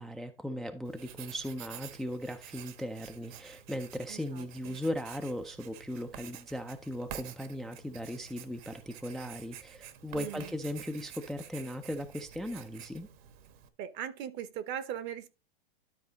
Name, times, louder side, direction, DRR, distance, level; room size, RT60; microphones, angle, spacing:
voice 1, 0.0-13.1, equal, ahead, 0.4 m, -38 dB
Writing, 0.9-13.7, right 10 dB, 55° right, 1.2 m, -49 dB
voice 2, 4.1-4.8 10.1-10.5 13.8-15.3, right 9 dB, 35° right, 0.9 m, -40 dB
12.0 x 4.1 x 3.9 m
hypercardioid pair, 130°, 30 cm